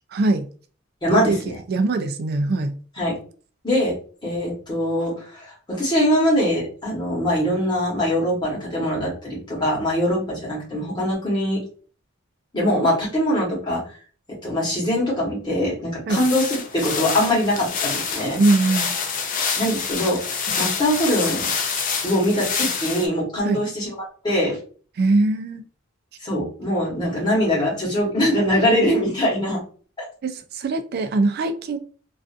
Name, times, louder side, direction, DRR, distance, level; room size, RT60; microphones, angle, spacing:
voice 1, 0.1-0.5 1.1-2.8 16.1-16.2 18.4-18.9 20.5-20.6 23.4-23.6 25.0-25.6 30.2-31.8, right 2 dB, 50° right, 0.3 m, -22 dB
voice 2, 1.0-1.3 3.0-3.1 3.6-3.9 4.2-11.6 12.5-13.8 14.4-18.4 19.6-21.5 22.0-23.9 24.2-24.6 26.2-29.6, equal, 20° left, 1.1 m, -22 dB
sound 1, 16.1-23.1, left 6 dB, 40° left, 0.4 m, -27 dB
2.4 x 2.4 x 2.4 m
head